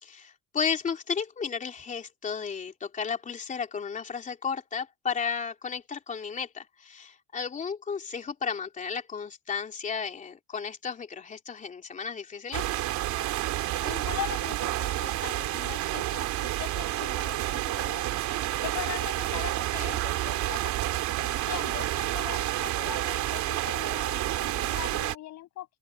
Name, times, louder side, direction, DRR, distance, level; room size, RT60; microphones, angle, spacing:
voice 1, 0.0-12.8 19.8-20.0, left 6 dB, 25° left, 3.3 m, -33 dB
sound 1, 12.5-25.2, right 15 dB, 60° right, 3.0 m, -29 dB
voice 2, 13.8-20.7 21.2-25.8, left 15 dB, 55° left, 7.5 m, -41 dB
open air
cardioid pair, 175°, 32 cm